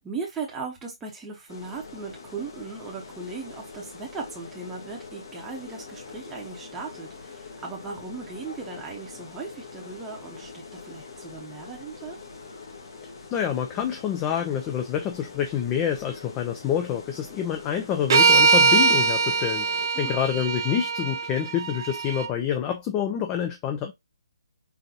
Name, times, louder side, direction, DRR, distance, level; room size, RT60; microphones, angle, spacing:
voice 1, 0.0-12.2 19.9-20.4, right 4 dB, 10° right, 0.8 m, -38 dB
sound 1, 1.5-19.9, left 4 dB, 55° left, 1.3 m, -44 dB
voice 2, 13.3-19.7 20.0-23.9, left 9 dB, 20° left, 0.4 m, -27 dB
sound 2, 18.1-22.3, right 4 dB, 50° right, 0.4 m, -21 dB
3.8 x 2.7 x 2.8 m
figure-of-eight pair, 145°, 3 cm